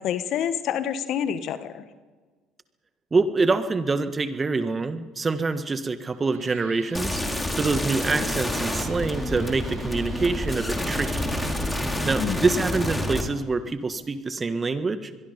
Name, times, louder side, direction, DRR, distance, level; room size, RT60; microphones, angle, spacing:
voice 1, 0.0-1.8 12.2-12.5, left 9 dB, 60° left, 11 dB, 1.5 m, -28 dB
voice 2, 3.1-11.3 12.0-15.1, right 3 dB, 30° right, 10 dB, 1.7 m, -26 dB
Guitar, 6.1-12.7, right 4 dB, 85° right, 3.7 m, -47 dB
sound 1, 6.9-13.2, left 1 dB, 10° left, 4.0 m, -28 dB
27.0 x 22.0 x 5.4 m, 1.4 s
hypercardioid pair, 65°, 0 cm